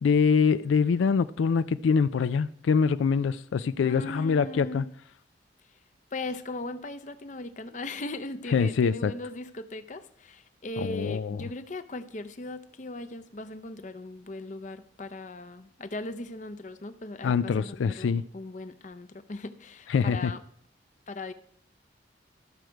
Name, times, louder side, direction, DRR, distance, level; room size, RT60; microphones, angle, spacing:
voice 1, 0.0-4.8 8.5-9.1 10.8-11.4 17.2-18.2 19.9-20.3, left 5 dB, 85° left, 0.4 m, -24 dB
voice 2, 3.8-4.9 6.1-20.4 21.1-21.3, left 2 dB, 40° left, 0.6 m, -38 dB
13.5 x 6.4 x 4.5 m
head